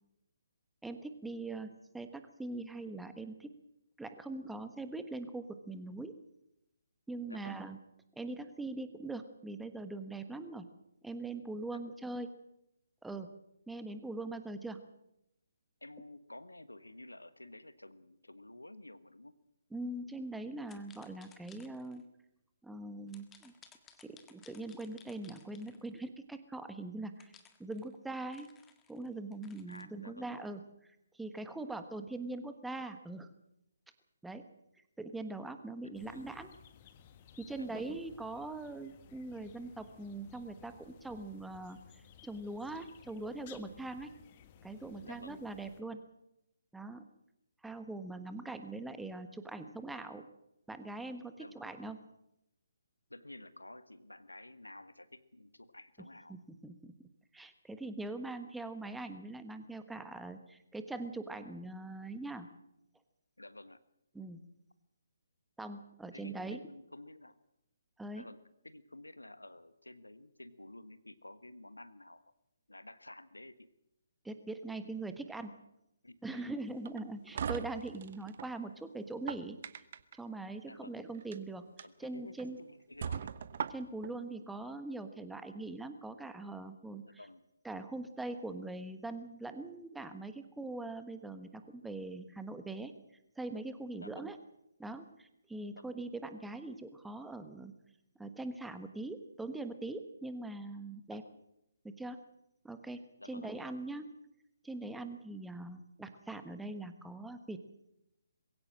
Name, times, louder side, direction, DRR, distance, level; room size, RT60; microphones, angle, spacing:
voice 1, 0.8-3.6 4.0-6.2 7.1-7.8 8.2-10.7 11.0-12.3 13.0-13.3 13.7-14.8 19.7-22.1 22.6-23.5 24.0-27.3 27.6-28.5 28.9-33.3 34.2-34.5 35.0-36.5 37.4-44.1 44.6-46.0 46.7-47.0 47.6-50.3 50.7-52.0 56.3-56.9 57.3-62.5 64.1-64.4 65.6-66.6 68.0-68.2 74.2-75.5 76.2-79.6 80.1-81.7 82.0-82.6 83.7-87.2 87.6-92.9 93.4-94.4 94.8-97.7 98.2-101.2 101.8-102.2 102.6-104.1 104.6-107.6, right 2 dB, 5° right, 9 dB, 1.3 m, -42 dB
voice 2, 7.3-7.6 11.7-11.9 15.8-19.4 29.7-30.3 36.1-36.2 37.6-38.0 45.0-45.4 51.4-51.7 53.1-56.4 63.4-63.8 66.1-67.4 68.1-68.4 68.6-72.3 72.7-73.7 76.0-76.4 80.6-81.0 81.8-83.3 87.0-87.4 94.0-94.2 95.8-95.9 101.1-101.4 103.2-103.5, left 1 dB, 85° left, 13 dB, 1.4 m, -52 dB
sound 1, 20.7-22.0 23.1-26.1 27.2-29.8, left 7 dB, 15° left, 1.7 m, -61 dB
sound 2, 35.9-45.8, left 8 dB, 30° left, 1.5 m, -58 dB
sound 3, 76.8-78.5 79.1-80.2 81.1-81.4 81.8-81.9 82.4-82.5 83.0-84.1, right 7 dB, 45° right, 1.0 m, -39 dB
21.5 x 16.5 x 7.6 m, 0.85 s
figure-of-eight pair, 140°, 0 cm